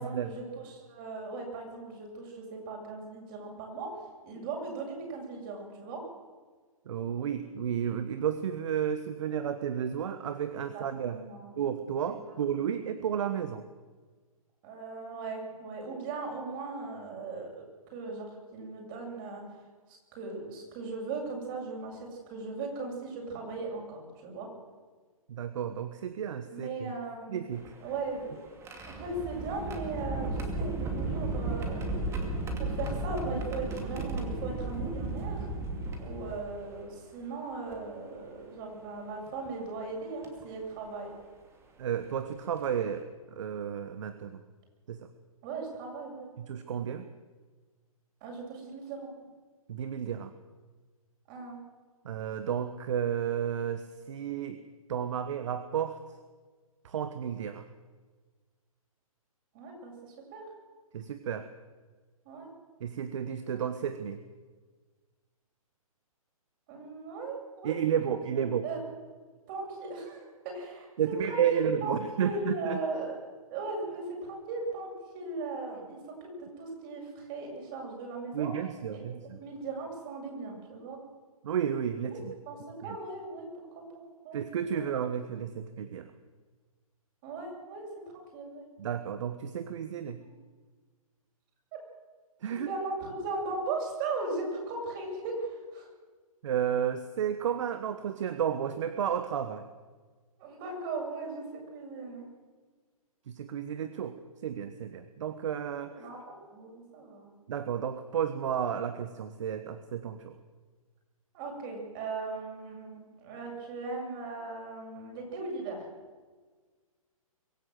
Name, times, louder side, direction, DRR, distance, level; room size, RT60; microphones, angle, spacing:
voice 1, 0.0-3.9 4.2-6.0 10.7-11.5 12.1-12.2 12.6-12.7 14.6-17.5 17.9-19.4 20.1-24.5 26.5-27.4 27.8-28.4 28.9-31.9 32.6-35.5 36.0-41.1 45.4-46.3 48.2-49.1 51.3-51.6 59.5-60.4 62.2-62.5 66.7-67.8 68.3-68.8 69.5-70.9 71.3-76.3 76.6-78.5 78.9-79.0 79.4-81.0 82.1-82.2 82.5-83.5 83.9-84.4 84.7-84.9 87.2-87.9 88.3-88.6 90.2-90.3 92.7-95.9 100.4-101.4 101.7-102.3 105.9-107.3 111.3-115.8, right 3 dB, 35° right, 0 dB, 7.5 m, -38 dB
voice 2, 6.9-11.2 11.6-13.6 25.3-26.9 27.3-27.7 41.8-44.4 44.9-45.1 46.4-47.0 49.7-50.3 52.0-54.6 54.9-56.0 56.8-57.7 60.9-61.5 62.8-64.2 67.6-68.6 71.0-72.8 78.3-79.4 81.4-82.3 82.8-83.0 84.3-86.1 88.8-90.2 92.4-92.7 96.4-99.7 103.3-104.2 104.4-105.9 107.5-110.4, right 8 dB, 55° right, 11 dB, 1.2 m, -32 dB
sound 1, 27.5-36.8 37.7-37.8 39.3-39.5 40.2-40.4 42.0-42.1 42.6-42.8, right 2 dB, 15° right, 2.5 m, -35 dB
23.5 x 14.5 x 7.8 m, 1.4 s
hypercardioid pair, 135°, 19 cm